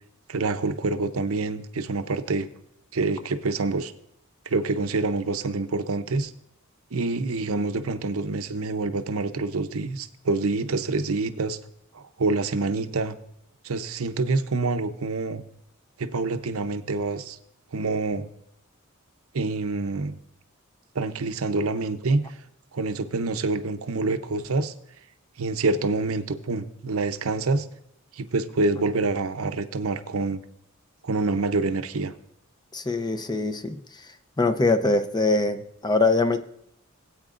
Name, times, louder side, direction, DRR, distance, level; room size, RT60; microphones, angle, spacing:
voice 1, 0.3-2.5 2.9-3.9 4.5-6.3 6.9-11.6 11.9-13.2 13.6-15.4 16.0-17.4 17.7-18.3 19.3-20.2 20.9-22.2 22.7-24.7 25.4-27.7 28.1-30.4 31.0-32.1, right 3 dB, 85° right, 10 dB, 0.7 m, -26 dB
voice 2, 32.7-33.8 34.4-36.4, left 3 dB, 20° left, 8 dB, 0.7 m, -23 dB
18.0 x 8.7 x 2.5 m, 0.76 s
head